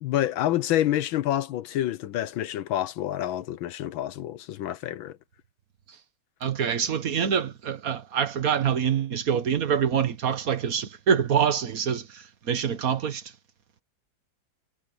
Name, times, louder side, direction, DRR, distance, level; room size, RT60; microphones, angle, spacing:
voice 1, 0.0-5.1, left 12 dB, 80° left, 1.6 m, -28 dB
voice 2, 6.4-13.3, right 7 dB, 50° right, 1.7 m, -25 dB
omnidirectional pair, 2.2 m